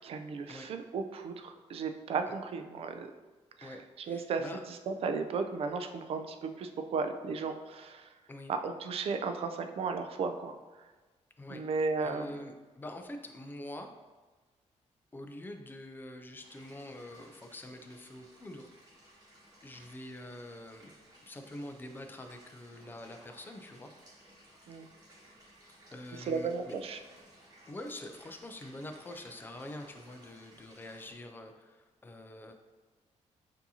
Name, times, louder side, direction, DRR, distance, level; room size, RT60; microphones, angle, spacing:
voice 1, 0.0-3.1 3.6-8.1 8.5-10.5 11.5-12.4 24.7-24.9 26.2-27.0, right 4 dB, 55° right, 7 dB, 0.4 m, -35 dB
voice 2, 3.6-4.6 8.3-8.5 11.4-11.6 12.0-13.9 15.1-18.7 19.6-20.9 21.3-23.9 25.9-26.7 27.7-32.5, left 1 dB, 15° left, 5 dB, 0.3 m, -45 dB
sound 1, 16.4-31.1, right 1 dB, 30° right, 1.1 m, -59 dB
6.9 x 2.7 x 2.7 m, 1.3 s
wide cardioid pair, 175°, 12 cm